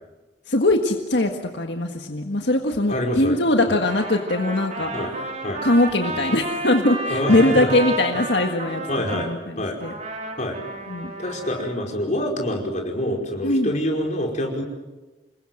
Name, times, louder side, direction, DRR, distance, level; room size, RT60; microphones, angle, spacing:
voice 1, 0.5-4.9 5.6-8.8 9.1-9.9 10.9-11.1 13.4-13.7, left 1 dB, 80° left, 4 dB, 1.7 m, -21 dB
voice 2, 2.9-3.4 3.7-3.8 4.9-5.1 5.4-5.6 7.1-7.7 8.9-9.3 9.6-9.8 10.3-10.6 11.2-14.6, left 1 dB, 45° left, 1 dB, 5.1 m, -26 dB
Trumpet, 3.8-9.3 9.8-11.8, right 2 dB, 45° right, 4.7 m, -32 dB
27.5 x 21.5 x 7.8 m, 1.2 s
head